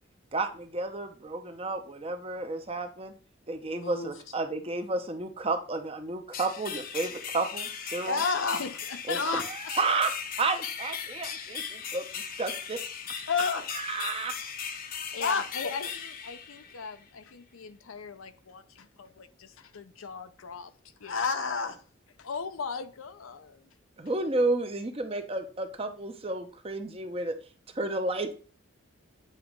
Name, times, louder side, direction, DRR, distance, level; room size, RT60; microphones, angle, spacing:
voice 1, 0.3-3.1 3.5-8.2 9.1-9.2 9.7-10.1 10.4-12.0 12.4-12.8 13.7-14.4 24.0-27.4 27.7-28.3, right 3 dB, 30° right, 0.7 m, -31 dB
voice 2, 3.7-4.1 8.1-8.6 9.1-9.4 9.7-9.8 13.3-13.6 15.2-15.4 21.0-21.8, left 4 dB, 70° left, 0.9 m, -28 dB
sound 1, 6.3-17.0, left 7 dB, 45° left, 0.7 m, -38 dB
voice 3, 8.6-9.2 9.6-9.7 11.8-11.9 13.2-13.3 15.1-21.3 22.2-23.7, left 5 dB, 85° left, 0.6 m, -40 dB
8.9 x 3.0 x 5.1 m
head